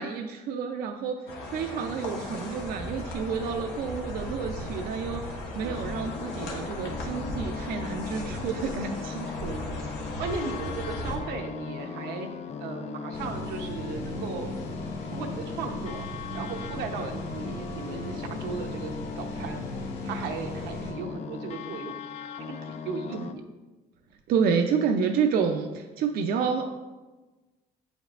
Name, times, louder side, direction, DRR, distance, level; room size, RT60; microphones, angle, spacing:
voice 1, 0.0-9.3 23.1-23.3 24.3-26.7, right 6 dB, 65° right, 4 dB, 0.5 m, -29 dB
sound 1, 1.3-11.2, left 1 dB, 90° left, 1.3 m, -36 dB
sound 2, 5.7-23.3, left 6 dB, 40° left, 0.4 m, -39 dB
voice 2, 9.3-12.3 12.6-14.6 15.0-16.1 16.3-19.7 20.0-21.9 22.4-23.4, right 4 dB, 90° right, 3 dB, 0.9 m, -36 dB
vent air conditioner int nearby +changes, 13.1-20.9, equal, 70° left, 1.8 m, -38 dB
8.2 x 5.3 x 2.5 m, 1.2 s
cardioid pair, 110°, 17 cm